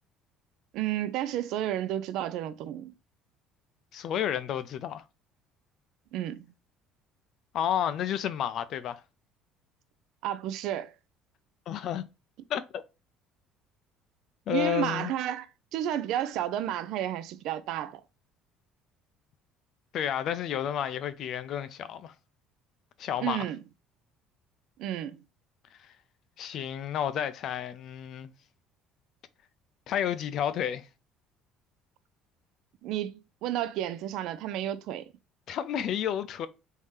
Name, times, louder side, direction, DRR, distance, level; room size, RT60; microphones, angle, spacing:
voice 1, 0.7-2.9 6.1-6.5 10.2-10.9 14.5-18.0 23.2-23.6 24.8-25.2 32.8-35.1, right 11 dB, 70° right, 0.4 m, -32 dB
voice 2, 3.9-5.0 7.5-9.0 11.7-12.1 12.5-12.8 14.5-15.1 19.9-22.1 23.0-23.5 25.7-25.9 26.4-28.3 29.9-30.9 35.5-36.5, left 10 dB, 55° left, 0.4 m, -31 dB
3.5 x 2.7 x 3.2 m
cardioid pair, 120°, 0 cm